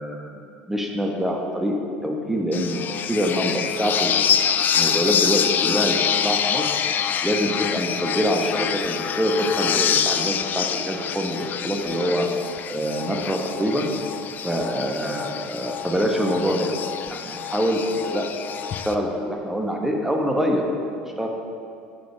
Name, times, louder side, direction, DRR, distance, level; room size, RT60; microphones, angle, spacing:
voice 1, 0.0-1.7 2.0-4.2 4.7-6.6 7.2-12.3 12.7-13.9 14.4-16.7 17.1-20.7 21.2-21.3, equal, 5° right, 1 dB, 0.9 m, -25 dB
sound 1, 2.5-18.9, left 8 dB, 40° left, 0.3 m, -26 dB
6.4 x 5.0 x 4.7 m, 2.5 s
figure-of-eight pair, 65°, 5 cm